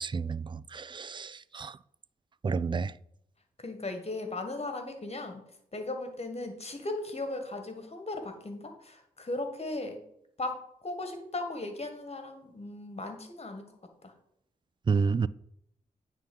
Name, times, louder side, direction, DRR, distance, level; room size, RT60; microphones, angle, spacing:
voice 1, 0.0-1.8 2.4-2.9 14.9-15.3, right 5 dB, 30° right, 0.3 m, -30 dB
voice 2, 3.6-5.4 5.7-10.0 10.4-13.7, left 2 dB, 40° left, 1.8 m, -37 dB
9.2 x 3.8 x 5.5 m
supercardioid pair, 45°, 17 cm